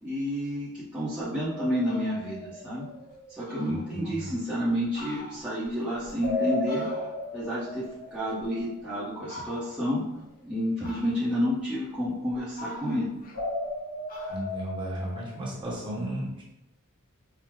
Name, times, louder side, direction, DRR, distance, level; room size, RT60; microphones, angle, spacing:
voice 1, 0.0-2.8 3.4-6.9 7.3-7.8 8.1-10.0 10.4-13.1, equal, 5° right, -11 dB, 0.8 m, -30 dB
Fowl, 1.3-1.4 1.7-2.3 2.8-2.9 3.1-3.2 3.5-4.4 4.8-7.4 7.8-8.8 9.2-9.9 10.8-11.5 12.0-13.8 14.1-15.7, left 1 dB, 40° left, 0.7 m, -46 dB
sound 1, 1.4-3.5 6.2-9.1 13.3-15.6, left 2 dB, 60° left, 1.2 m, -35 dB
voice 2, 3.7-4.3 14.3-16.4, right 1 dB, 25° right, -5 dB, 1.1 m, -34 dB
4.6 x 2.0 x 3.7 m, 0.94 s
head